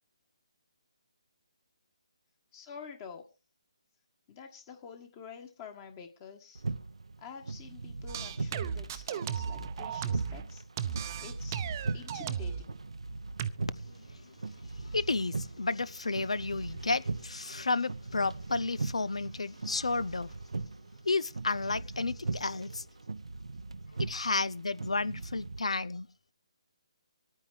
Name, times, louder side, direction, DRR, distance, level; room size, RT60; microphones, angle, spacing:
voice 1, 2.5-3.2 4.3-6.6 7.2-10.6 11.2-11.6 11.9-12.7, left 6 dB, 30° left, 1.6 m, -48 dB
sound 1, 6.5-25.6, right 3 dB, 80° right, 0.7 m, -40 dB
sound 2, 8.1-10.5 10.8-12.7 13.4-13.5, right 8 dB, 35° right, 0.7 m, -35 dB
voice 2, 14.9-20.3 21.1-22.8 24.1-26.1, left 3 dB, 85° left, 0.6 m, -32 dB
25.0 x 9.2 x 3.3 m
figure-of-eight pair, 150°, 3 cm